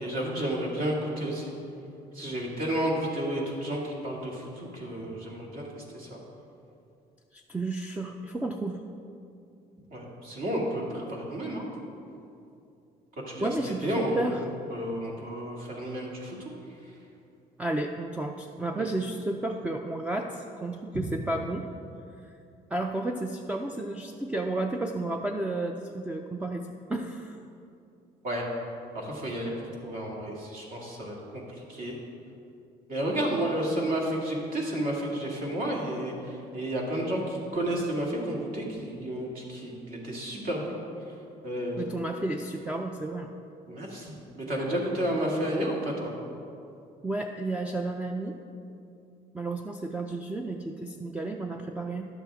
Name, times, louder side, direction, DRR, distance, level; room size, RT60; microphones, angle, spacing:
voice 1, 0.0-1.5 2.1-6.2 9.9-11.6 13.3-13.5 13.8-14.4 14.7-16.5 18.8-18.9 28.2-28.4 28.9-29.5 29.8-31.4 31.7-32.0 32.9-40.7 41.4-41.8 43.7-46.1, right 1 dB, 55° right, -2 dB, 2.1 m, -31 dB
voice 2, 7.3-8.8 13.4-14.5 17.6-21.6 22.2-22.3 22.7-27.4 41.8-43.3 47.0-48.4 49.3-52.1, right 2 dB, 10° right, 3 dB, 0.4 m, -32 dB
11.5 x 7.2 x 3.5 m, 2.6 s
cardioid pair, 110°, 17 cm